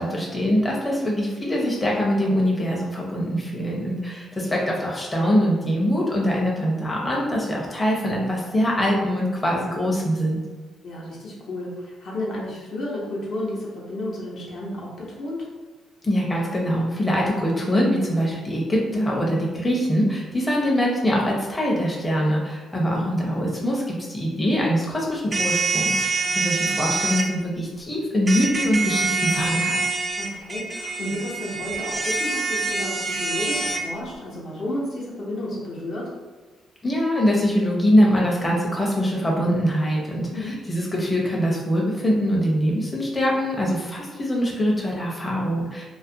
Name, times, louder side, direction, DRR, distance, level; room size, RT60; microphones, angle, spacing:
voice 1, 0.0-10.4 16.0-29.8 36.8-45.8, equal, 20° left, -3 dB, 0.6 m, -23 dB
voice 2, 10.8-15.5 22.7-23.1 26.2-26.9 30.2-36.1 40.3-40.6, left 1 dB, 65° left, -4 dB, 0.7 m, -32 dB
sound 1, 25.3-27.2 28.3-33.8, right 3 dB, 30° right, 0.3 m, -25 dB
2.4 x 2.1 x 2.6 m, 1.3 s
cardioid pair, 90°, 0 cm